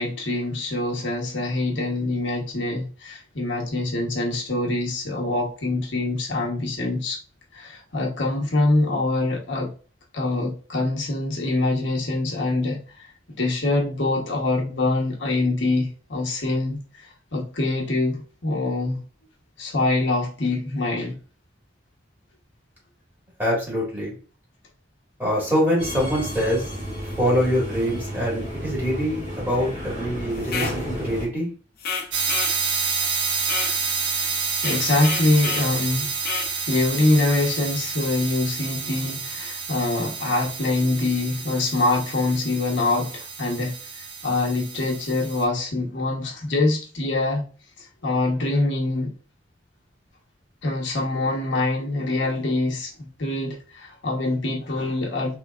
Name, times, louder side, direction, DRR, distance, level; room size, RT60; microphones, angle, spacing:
voice 1, 0.0-7.2 7.5-9.7 10.1-12.8 13.4-16.8 17.3-19.0 19.6-21.2 34.2-34.3 34.6-36.1 36.7-43.7 44.2-47.4 48.0-49.1 50.6-55.4, left 2 dB, 80° left, 1.1 m, -24 dB
voice 2, 23.4-24.1 25.2-26.7 27.0-31.5, equal, 10° right, 1.9 m, -24 dB
Subway metro underground, 25.8-31.2, equal, 35° right, 1.7 m, -32 dB
sound 1, 30.4-30.8 31.8-32.6 33.4-33.8 34.6-35.7 36.2-36.5, left 5 dB, 50° left, 0.8 m, -30 dB
sound 2, 32.1-45.4, right 5 dB, 65° right, 0.9 m, -29 dB
4.5 x 3.5 x 2.4 m
head